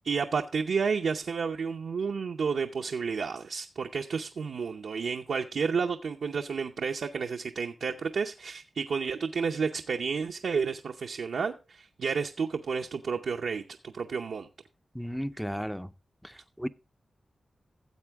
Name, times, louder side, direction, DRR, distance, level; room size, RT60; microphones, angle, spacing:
voice 1, 0.0-14.5, right 5 dB, 85° right, 0.7 m, -31 dB
voice 2, 14.9-15.9 16.2-16.7, equal, ahead, 0.5 m, -34 dB
13.5 x 7.8 x 3.5 m
cardioid pair, 75°, 0 cm